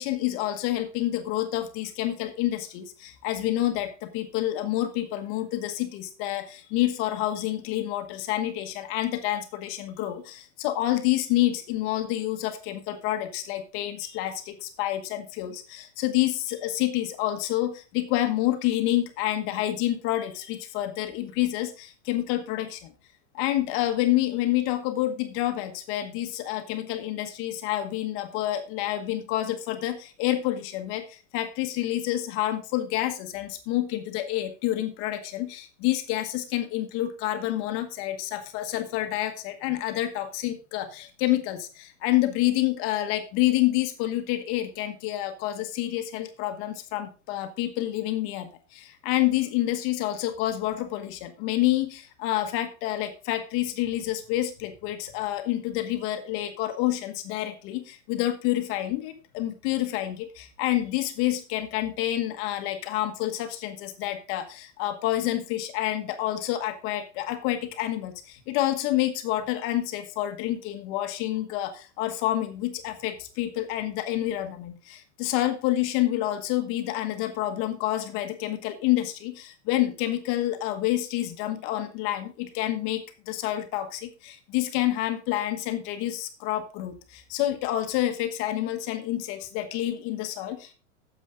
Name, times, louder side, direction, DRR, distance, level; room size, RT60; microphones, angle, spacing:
voice 1, 0.0-22.9 23.3-90.7, left 14 dB, 35° left, 7 dB, 1.2 m, -28 dB
10.0 x 7.2 x 3.8 m, 0.35 s
supercardioid pair, 160°, 36 cm